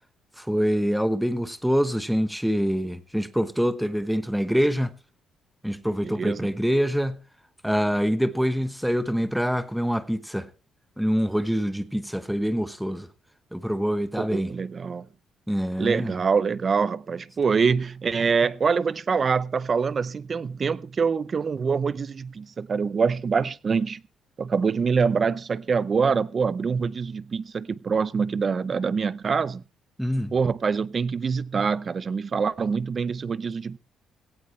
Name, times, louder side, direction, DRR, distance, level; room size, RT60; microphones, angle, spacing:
voice 1, 0.4-4.9 5.6-7.2 7.6-10.5 11.0-13.1 13.5-14.5 15.5-16.2 30.0-30.3, equal, ahead, 1.0 m, -25 dB
voice 2, 6.0-6.5 14.2-15.1 15.8-24.0 24.4-29.6 30.3-33.8, right 5 dB, 30° right, 0.6 m, -25 dB
17.5 x 16.0 x 3.2 m
cardioid pair, 170°, 0 cm